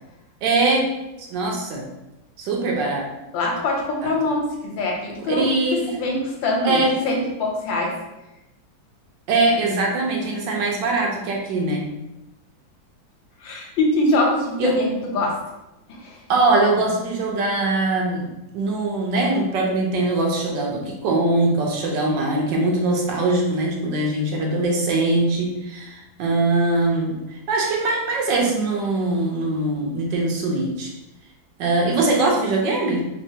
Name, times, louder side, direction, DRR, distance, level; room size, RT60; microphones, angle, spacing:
voice 1, 0.4-0.9 1.3-1.9 2.4-3.0 4.0-4.1 5.1-6.0 6.6-6.9 9.3-11.8 14.6-14.7 16.3-18.3 18.5-30.9 31.6-33.0, right 2 dB, 75° right, -1 dB, 1.3 m, -22 dB
voice 2, 3.3-8.0 13.4-15.4 15.9-16.2, left 2 dB, 80° left, 0 dB, 1.5 m, -23 dB
3.5 x 3.1 x 2.7 m, 0.94 s
omnidirectional pair, 2.1 m